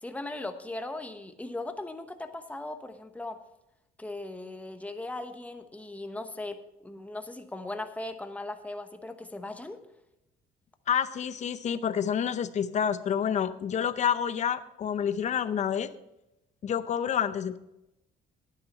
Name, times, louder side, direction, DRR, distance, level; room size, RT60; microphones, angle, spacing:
voice 1, 0.0-3.4 4.0-9.8, left 2 dB, 10° left, 7 dB, 1.1 m, -38 dB
voice 2, 10.9-15.9 16.6-17.6, left 8 dB, 45° left, 13 dB, 0.7 m, -28 dB
11.0 x 9.7 x 4.2 m, 0.90 s
cardioid pair, 110°, 17 cm